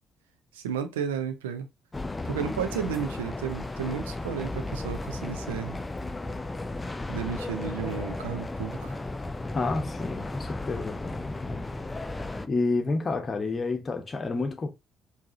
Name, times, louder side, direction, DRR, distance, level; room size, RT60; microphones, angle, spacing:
voice 1, 0.5-1.7 2.2-5.8 7.1-9.0, right 7 dB, 75° right, 0.5 m, -33 dB
sound 1, 1.9-12.5, left 2 dB, 20° left, 0.5 m, -35 dB
voice 2, 9.5-11.8 12.4-14.7, left 3 dB, 35° left, 0.9 m, -30 dB
4.6 x 2.8 x 2.7 m
figure-of-eight pair, 45°, 0 cm